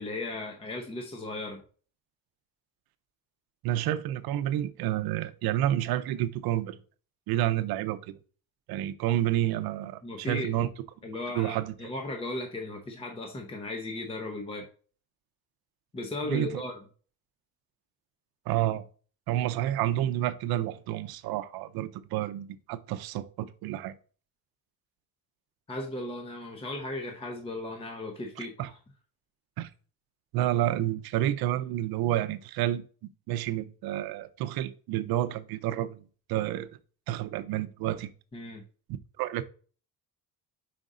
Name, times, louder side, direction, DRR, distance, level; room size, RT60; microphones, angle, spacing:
voice 1, 0.0-1.6 10.0-10.7 11.0-14.7 15.9-16.8 25.7-28.7 38.3-38.6, left 2 dB, 15° left, 0.8 m, -36 dB
voice 2, 3.6-6.8 7.3-8.2 8.7-10.7 11.3-11.7 16.3-16.6 18.5-18.8 19.3-23.9 28.4-28.7 29.6-29.7 30.3-32.8 33.3-36.0 36.3-36.7 37.1-38.1 39.2-39.4, right 13 dB, 75° right, 0.7 m, -29 dB
5.2 x 5.1 x 3.7 m
cardioid pair, 150°, 37 cm